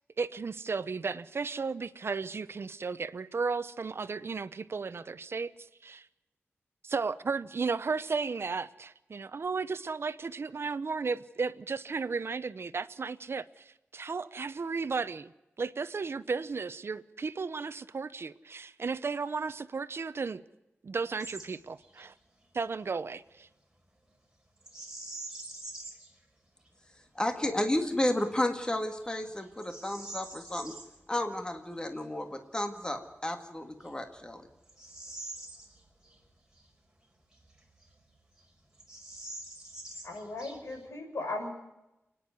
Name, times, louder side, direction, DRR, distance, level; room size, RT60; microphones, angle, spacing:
voice 1, 0.2-5.5 5.8-6.1 6.8-15.3 15.6-20.4 20.8-22.1 22.5-23.5, right 4 dB, 60° right, 0.8 m, -34 dB
Bird vocalization bird call bird song, 21.2-21.5 21.8-22.1 24.6-26.1 26.7-26.8 27.4-27.8 28.3-28.4 29.0-30.9 33.0-33.1 33.7-36.2 36.5-36.6 37.3-38.1 38.4-38.5 38.7-40.9, right 2 dB, 15° right, 5.0 m, -45 dB
voice 2, 27.2-30.7 31.1-34.4, left 1 dB, 20° left, 1.9 m, -32 dB
voice 3, 40.0-41.5, left 2 dB, 85° left, 6.0 m, -37 dB
29.0 x 10.0 x 9.5 m
wide cardioid pair, 115°, 5 cm